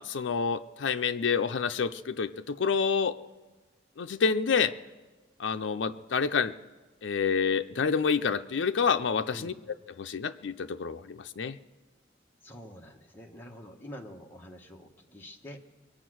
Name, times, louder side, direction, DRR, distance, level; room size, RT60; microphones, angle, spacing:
voice 1, 0.0-3.2 4.0-4.7 5.4-6.5 7.0-9.5 10.0-11.6, left 6 dB, 70° left, 8 dB, 0.5 m, -28 dB
voice 2, 12.4-15.6, left 1 dB, 10° left, 0 dB, 1.1 m, -46 dB
23.0 x 8.5 x 6.2 m, 1.2 s
head